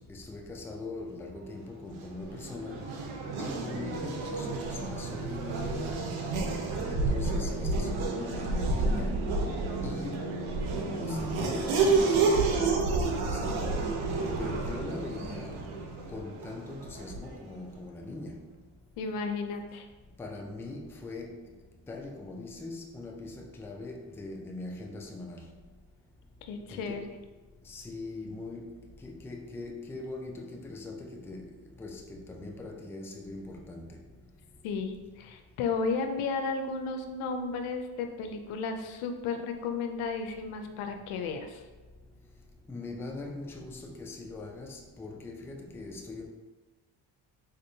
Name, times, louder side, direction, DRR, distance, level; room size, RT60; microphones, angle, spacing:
voice 1, 0.0-3.0 3.4-6.1 6.9-10.6 10.9-14.0 14.4-15.7 16.1-18.6 20.2-21.6 21.9-25.6 26.7-27.0 27.6-34.1 42.7-46.3, left 2 dB, 5° left, 0.3 m, -41 dB
Race car auto racing / Accelerating revving vroom, 1.8-17.5, right 3 dB, 75° right, 0.7 m, -30 dB
voice 2, 19.0-19.8 26.4-27.1 34.6-41.6, left 4 dB, 80° left, 0.6 m, -33 dB
4.1 x 2.6 x 2.7 m
cardioid pair, 70°, 49 cm